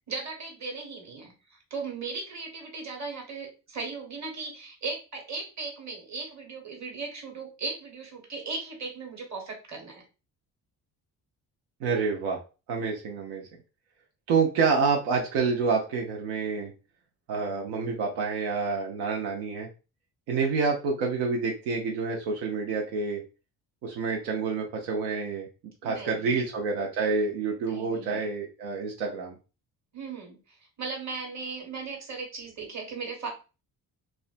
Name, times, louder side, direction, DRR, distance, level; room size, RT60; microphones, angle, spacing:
voice 1, 0.0-10.0 20.3-20.5 25.8-26.4 27.6-28.3 29.9-33.3, right 4 dB, 40° right, 1 dB, 1.2 m, -37 dB
voice 2, 11.8-12.4 12.7-13.5 14.3-16.7 17.3-19.7 20.3-23.2 23.8-25.5 25.8-29.4, right 4 dB, 85° right, 0 dB, 0.6 m, -28 dB
2.4 x 2.2 x 2.4 m, 0.32 s
supercardioid pair, 60°, 43 cm